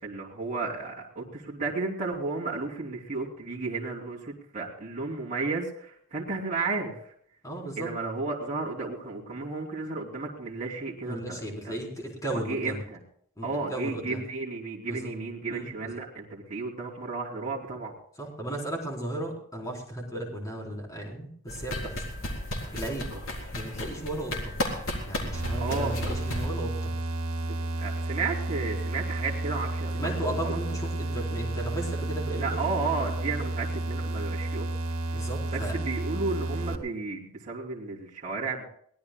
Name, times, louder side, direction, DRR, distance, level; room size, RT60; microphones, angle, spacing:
voice 1, 0.0-7.1 7.8-11.7 12.3-13.0 13.4-17.9 25.6-26.0 27.4-30.6 32.3-34.7 35.1-38.6, right 3 dB, 35° right, -4 dB, 3.2 m, -33 dB
voice 2, 7.4-7.9 11.0-12.8 13.4-14.2 14.9-15.1 15.5-15.9 18.2-22.0 22.7-23.1 23.5-24.6 25.0-26.9 29.9-32.6 35.1-35.7, right 1 dB, 15° left, -1 dB, 3.9 m, -35 dB
sound 1, 21.5-26.5, left 1 dB, 65° left, 3.9 m, -34 dB
sound 2, 25.3-36.8, right 2 dB, 70° right, 2.1 m, -31 dB
23.0 x 18.5 x 2.3 m, 0.64 s
head